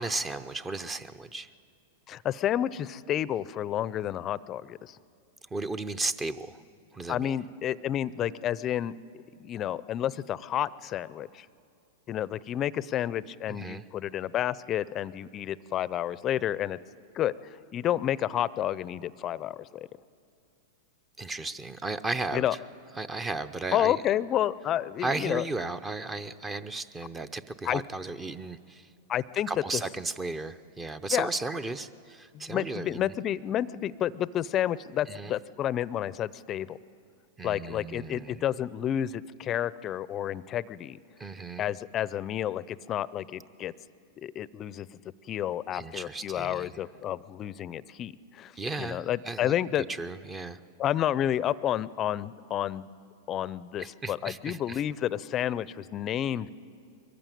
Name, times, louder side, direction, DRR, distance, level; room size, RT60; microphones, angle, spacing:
voice 1, 0.0-1.5 5.5-6.6 6.9-7.3 13.5-13.8 21.2-22.5 23.0-24.0 25.0-28.9 29.5-33.1 35.1-35.3 37.4-38.4 41.2-41.7 45.7-46.8 48.6-49.5 49.9-50.6 53.8-54.8, right 3 dB, 20° right, 12 dB, 0.6 m, -35 dB
voice 2, 2.1-5.0 7.1-11.5 12.1-16.8 17.1-19.9 22.3-22.6 23.7-25.4 27.6-27.8 29.1-29.8 31.1-31.3 32.3-36.8 37.4-41.0 41.6-43.7 44.2-44.9 45.3-48.5 48.8-49.9 50.8-52.9 53.3-56.5, left 11 dB, 35° left, 19 dB, 0.5 m, -30 dB
22.5 x 15.0 x 9.0 m, 2.4 s
hypercardioid pair, 110°, 0 cm